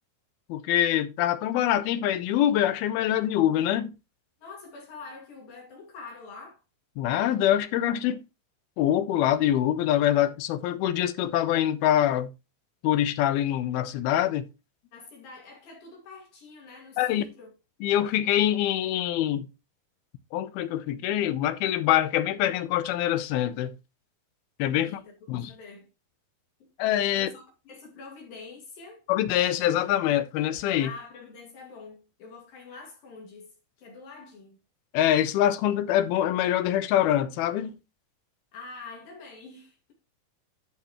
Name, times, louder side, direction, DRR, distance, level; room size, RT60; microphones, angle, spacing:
voice 1, 0.5-3.9 7.0-8.2 8.8-12.3 12.8-14.5 17.0-17.2 17.8-19.5 20.3-23.8 24.6-25.0 25.3-25.5 26.8-27.3 29.1-30.9 34.9-37.8, left 12 dB, 90° left, 2.6 m, -24 dB
voice 2, 4.4-6.6 14.9-17.5 24.8-25.1 25.5-25.9 27.1-29.0 30.8-34.6 38.5-39.9, left 4 dB, 70° left, 3.9 m, -45 dB
11.0 x 6.8 x 3.1 m
omnidirectional pair, 4.3 m